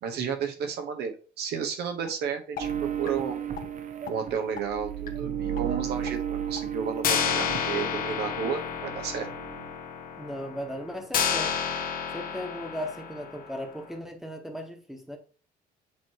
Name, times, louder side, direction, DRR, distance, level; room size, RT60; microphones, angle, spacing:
voice 1, 0.0-3.4 4.1-9.3, right 7 dB, 75° right, 1.3 m, -32 dB
sound 1, 2.1-2.2 2.6-2.7 3.1-3.2 3.6-3.7 4.1-4.2 4.6-4.7 5.1-5.2 5.6-5.7 6.1-6.2 6.6-6.7 7.0-13.7, left 7 dB, 55° left, 1.1 m, -31 dB
sound 2, 2.6-8.3 8.6-9.8, right 9 dB, 45° right, 1.0 m, -34 dB
voice 2, 10.2-11.6 12.1-15.2, equal, ahead, 1.3 m, -37 dB
7.7 x 3.1 x 4.8 m
cardioid pair, 110°, 17 cm